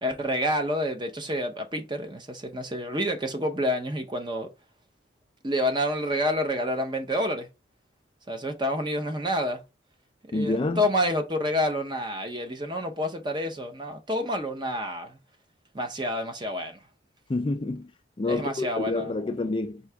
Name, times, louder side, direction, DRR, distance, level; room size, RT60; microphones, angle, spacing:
voice 1, 0.0-4.5 5.4-7.5 8.3-9.6 10.3-15.2 15.7-16.8 18.3-19.1, equal, 25° right, 0.7 m, -28 dB
voice 2, 10.3-10.8 17.3-17.9 18.2-19.8, left 2 dB, 25° left, 0.3 m, -28 dB
4.6 x 2.8 x 3.4 m
head